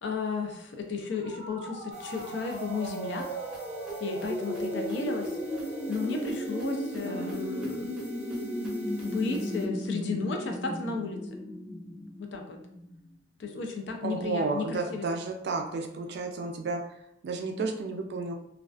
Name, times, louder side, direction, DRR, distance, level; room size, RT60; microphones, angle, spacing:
voice 1, 0.0-3.2 4.0-5.4 5.9-7.9 9.0-11.2 12.2-12.6 13.4-15.2, left 4 dB, 75° left, 3 dB, 0.4 m, -34 dB
sound 1, 1.1-12.9, equal, 55° left, 1.0 m, -35 dB
sound 2, 1.9-9.7, right 1 dB, 5° right, 0.7 m, -51 dB
voice 2, 7.0-7.4 14.0-16.8 17.2-18.3, right 3 dB, 60° right, 4 dB, 0.4 m, -32 dB
2.3 x 2.3 x 2.3 m, 0.77 s
head